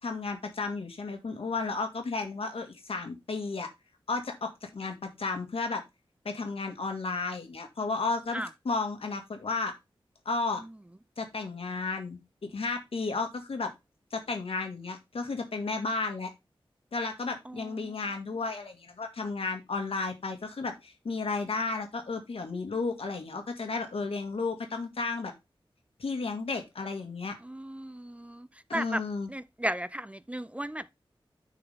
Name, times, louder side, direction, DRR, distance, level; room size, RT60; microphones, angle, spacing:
voice 1, 0.0-3.7 4.1-5.8 6.3-9.7 10.3-10.6 11.2-13.7 14.1-16.3 16.9-25.3 26.0-27.4 28.7-29.3, left 3 dB, 85° left, 1.7 m, -33 dB
voice 2, 17.5-18.0 27.4-28.5 28.7-29.0 29.3-30.9, right 1 dB, 15° right, 0.3 m, -35 dB
9.5 x 4.6 x 3.4 m
wide cardioid pair, 85°, 9 cm